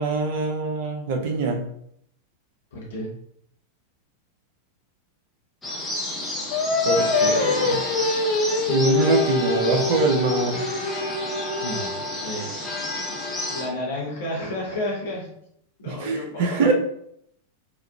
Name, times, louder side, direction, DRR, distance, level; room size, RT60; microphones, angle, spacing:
voice 1, 0.0-1.6 6.8-7.8 8.7-10.7 15.9-16.7, right 3 dB, 50° right, 2 dB, 0.5 m, -24 dB
voice 2, 2.7-3.1 11.6-11.9 12.2-12.7 13.5-15.3 15.8-16.7, left 1 dB, 60° left, -4 dB, 0.8 m, -31 dB
sound 1, 5.6-13.7, left 1 dB, 10° left, 0.7 m, -30 dB
Singing, 6.5-11.9, left 3 dB, 45° left, 0.4 m, -24 dB
2.9 x 2.3 x 2.3 m, 0.70 s
figure-of-eight pair, 90°, 0 cm